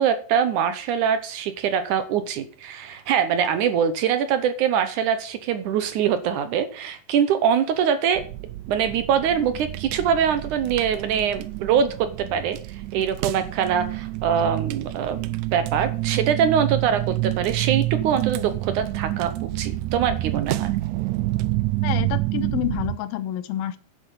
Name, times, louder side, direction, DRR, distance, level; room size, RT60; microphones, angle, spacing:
voice 1, 0.0-8.2 8.7-12.6 12.9-20.8, right 8 dB, 70° right, 10 dB, 2.1 m, -23 dB
sound 1, 8.2-23.0, right 18 dB, 85° right, 1.7 m, -28 dB
voice 2, 21.8-23.8, left 13 dB, 90° left, 13 dB, 2.6 m, -28 dB
10.5 x 7.8 x 6.9 m, 0.41 s
omnidirectional pair, 4.2 m